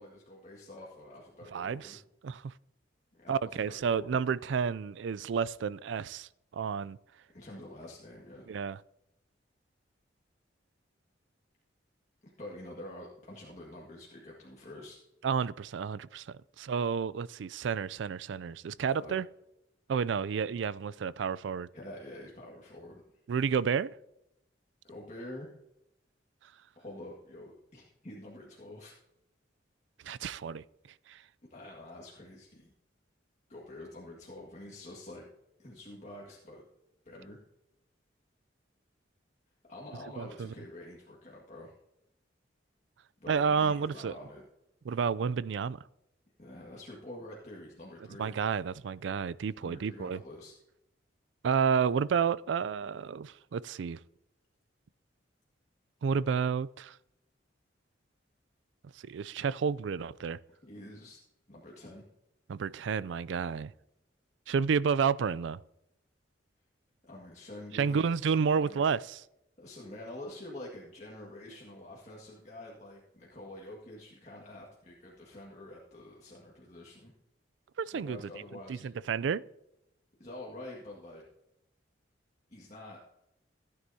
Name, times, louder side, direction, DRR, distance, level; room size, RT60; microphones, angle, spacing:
voice 1, 0.0-2.0 3.1-4.2 7.3-8.5 12.2-15.0 19.0-19.2 21.7-23.0 24.8-25.5 26.8-28.9 31.5-32.7 33.5-35.3 35.6-36.6 37.1-37.4 39.7-41.7 43.2-44.4 46.4-48.3 49.6-50.5 60.6-61.2 61.5-62.0 67.0-68.1 68.6-68.9 69.6-77.1 77.9-78.9 80.2-81.2 82.5-83.0, left 1 dB, 40° left, 1.8 m, -47 dB
voice 2, 1.5-2.5 3.3-6.3 6.5-7.0 8.5-8.8 15.2-19.2 19.9-21.7 23.3-23.9 30.1-30.6 31.1-31.2 40.2-40.5 43.3-44.1 44.9-45.8 48.2-50.2 51.4-54.0 56.0-56.9 59.0-60.4 62.5-63.7 64.5-65.6 67.7-69.2 77.8-78.2 78.7-79.4, right 6 dB, 75° right, 0.4 m, -30 dB
15.5 x 9.6 x 2.8 m
head